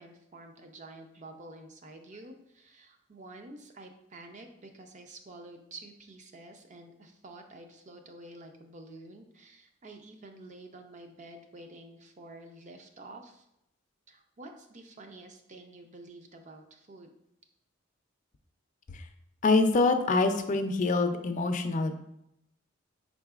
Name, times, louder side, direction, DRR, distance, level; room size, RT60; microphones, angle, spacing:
voice 1, 0.0-13.4 14.1-17.1, right 2 dB, 40° right, 5 dB, 0.5 m, -49 dB
voice 2, 19.4-22.1, left 3 dB, 40° left, 7 dB, 0.4 m, -25 dB
5.6 x 3.9 x 2.4 m, 0.82 s
head